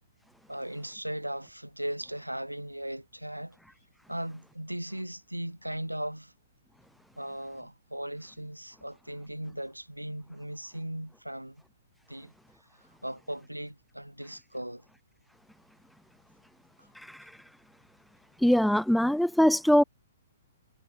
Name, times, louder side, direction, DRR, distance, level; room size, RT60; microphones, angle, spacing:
voice 1, 0.5-3.6 4.1-6.3 7.2-11.6 12.1-12.3 13.0-14.9 16.8-16.9, right 1 dB, 90° right, 4.1 m, -38 dB
voice 2, 17.0-17.3 18.4-19.8, equal, ahead, 0.5 m, -23 dB
figure-of-eight pair, 115°, 0 cm